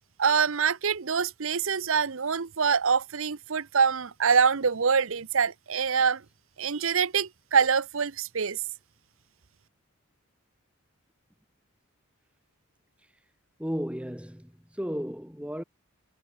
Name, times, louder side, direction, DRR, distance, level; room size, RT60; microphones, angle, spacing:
voice 1, 0.2-6.2 6.6-8.6, right 6 dB, 60° right, 0.7 m, -25 dB
voice 2, 13.6-15.6, equal, 5° right, 1.8 m, -34 dB
head